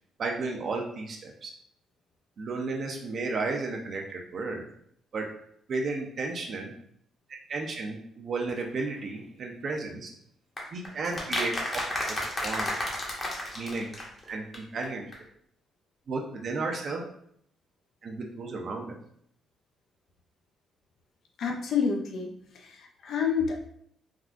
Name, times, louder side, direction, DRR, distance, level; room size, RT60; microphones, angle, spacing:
voice 1, 0.2-1.5 2.4-4.7 5.1-5.3 5.7-6.7 7.5-10.1 10.7-11.8 12.1-12.2 12.4-12.7 13.5-13.9 14.2-15.0 16.1-17.0 18.0-18.9, right 3 dB, 55° right, 1 dB, 0.4 m, -33 dB
sound 1, 10.6-14.3 14.5-14.6 14.8-14.9 15.1-15.2, left 1 dB, 30° left, 0.8 m, -32 dB
voice 2, 21.4-23.6, left 6 dB, 65° left, 2 dB, 0.4 m, -29 dB
3.5 x 2.4 x 2.4 m, 0.68 s
cardioid pair, 90°, 0 cm